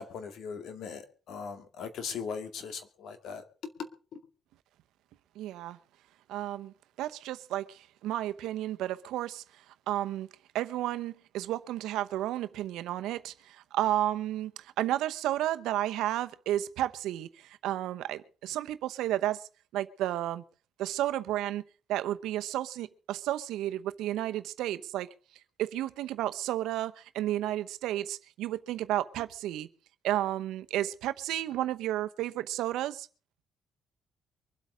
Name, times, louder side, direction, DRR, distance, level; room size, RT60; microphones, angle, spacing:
voice 1, 0.0-4.2, left 6 dB, 75° left, 2.3 m, -40 dB
voice 2, 5.4-5.8 6.3-9.4 9.9-10.3 10.5-20.4 20.8-21.6 21.9-25.1 25.6-29.7 30.0-33.1, right 13 dB, 90° right, 0.9 m, -32 dB
23.5 x 8.3 x 5.1 m
cardioid pair, 90°, 0 cm